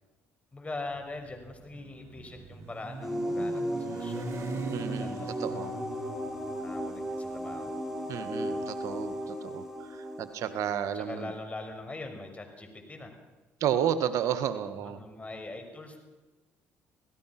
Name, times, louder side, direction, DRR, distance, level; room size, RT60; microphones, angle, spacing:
voice 1, 0.5-4.3 4.8-5.8 6.6-7.8 8.5-8.8 10.9-13.2 14.7-16.0, left 2 dB, 25° left, 5 dB, 6.2 m, -42 dB
Motorcycle, 0.9-9.1, right 4 dB, 55° right, 2.3 m, -42 dB
sound 1, 3.0-11.4, equal, 5° right, 6.8 m, -35 dB
voice 2, 4.7-5.7 8.1-11.3 13.6-15.0, right 9 dB, 70° right, 11 dB, 1.7 m, -32 dB
27.5 x 17.5 x 6.1 m, 1.2 s
supercardioid pair, 65°, 6 cm